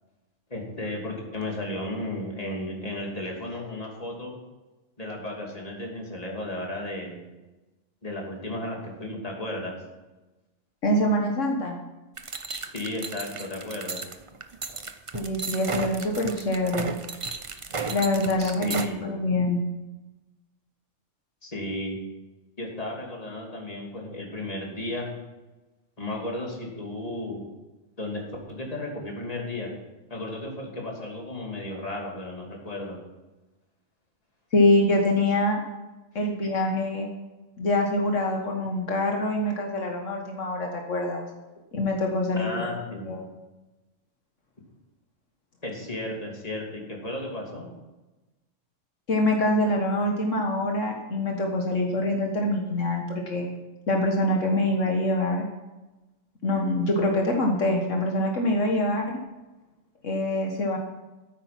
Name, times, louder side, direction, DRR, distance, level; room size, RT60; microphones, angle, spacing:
voice 1, 0.5-4.3 5.0-7.2 8.0-9.7 12.5-14.0 18.4-19.1 21.4-22.0 22.6-25.1 26.0-27.4 28.0-28.2 28.5-29.7 30.1-33.0 42.4-43.1 45.6-47.7, left 1 dB, 30° left, -1 dB, 2.9 m, -34 dB
voice 2, 10.8-11.8 15.1-16.9 17.9-19.6 34.5-35.6 36.1-37.1 37.6-41.3 41.7-42.7 43.0-43.2 49.1-53.5 53.9-55.5 56.4-59.2 60.0-60.8, left 1 dB, 70° left, 1 dB, 1.7 m, -25 dB
sound 1, 12.2-18.9, right 4 dB, 30° right, 0.7 m, -34 dB
13.5 x 9.0 x 5.9 m, 1.1 s
omnidirectional pair, 1.3 m